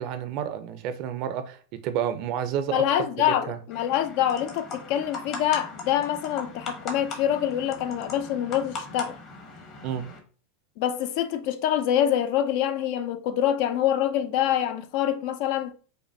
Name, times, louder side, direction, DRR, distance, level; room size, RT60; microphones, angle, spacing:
voice 1, 0.0-2.8 3.5-3.6 9.8-10.0, right 9 dB, 55° right, 0.5 m, -30 dB
voice 2, 2.7-9.2 10.8-15.7, left 11 dB, 60° left, 0.4 m, -25 dB
sound 1, 3.7-10.2, left 3 dB, 45° left, 1.0 m, -39 dB
5.2 x 2.2 x 2.6 m
hypercardioid pair, 105°, 0 cm